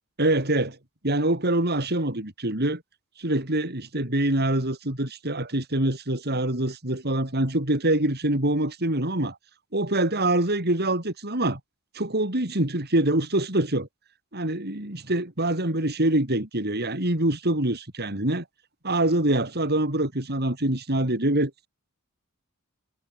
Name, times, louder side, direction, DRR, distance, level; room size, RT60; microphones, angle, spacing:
voice 1, 0.2-0.8 1.0-2.8 3.2-9.4 9.7-11.6 11.9-13.9 14.3-18.4 18.8-21.7, right 1 dB, 50° right, 5.0 m, -25 dB
head